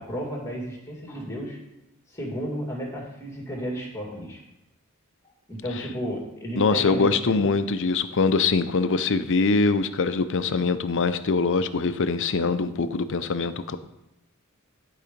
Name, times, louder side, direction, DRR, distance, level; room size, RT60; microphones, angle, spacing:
voice 1, 0.0-1.6 2.1-4.4 5.5-7.1 7.4-7.5, equal, 15° left, -1 dB, 2.2 m, -33 dB
voice 2, 6.6-13.8, left 4 dB, 60° left, 11 dB, 0.6 m, -23 dB
11.5 x 4.8 x 5.2 m, 0.90 s
head